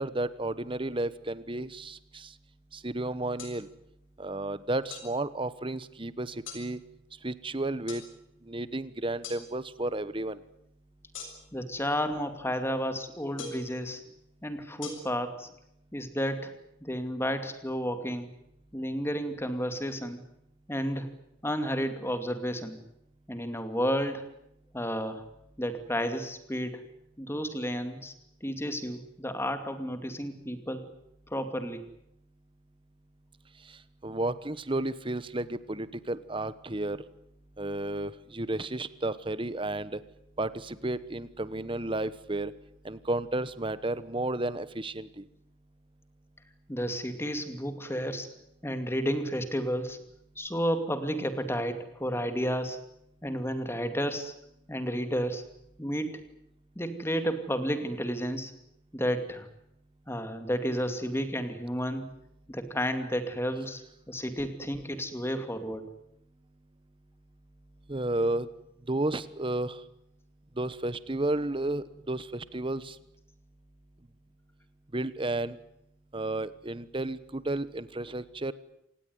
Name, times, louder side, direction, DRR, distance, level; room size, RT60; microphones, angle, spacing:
voice 1, 0.0-2.3 2.7-3.7 4.2-6.8 7.2-8.0 8.4-10.4 34.0-37.0 37.6-40.0 40.4-42.5 42.8-45.2 67.9-68.5 68.9-69.8 70.6-73.0 74.9-75.6 76.1-78.5, right 2 dB, 25° right, 15 dB, 1.2 m, -32 dB
sound 1, 3.4-3.6 4.9-5.1 6.5-6.6 7.9-8.1 9.2-9.4 11.1-11.6 13.4-13.7 14.8-14.9, left 5 dB, 90° left, 7.4 m, -41 dB
voice 2, 11.5-14.0 14.4-15.5 15.9-16.5 16.8-18.3 18.7-20.2 20.7-21.1 21.4-22.8 23.3-24.3 24.7-25.2 25.6-26.8 27.2-28.1 28.4-30.9 31.3-31.8 46.7-48.3 48.6-50.0 50.4-52.8 53.2-54.3 54.7-55.4 55.8-56.2 56.8-58.5 58.9-59.5 60.1-62.1 62.5-65.9, equal, 15° left, 8 dB, 2.5 m, -32 dB
27.0 x 19.0 x 9.5 m, 0.79 s
head